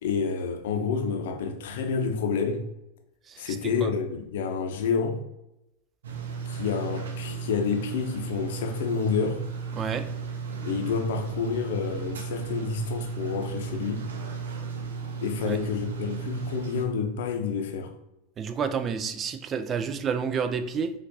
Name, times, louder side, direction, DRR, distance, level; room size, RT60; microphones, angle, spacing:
voice 1, 0.0-2.7 3.4-5.2 6.5-9.5 10.7-14.0 15.2-17.9, left 5 dB, 70° left, 0.6 m, -29 dB
sound 1, 6.0-16.8, right 5 dB, 80° right, 0.6 m, -35 dB
voice 2, 18.4-20.9, right 6 dB, 35° right, 0.4 m, -29 dB
4.3 x 2.4 x 2.7 m
hypercardioid pair, 95°, 0 cm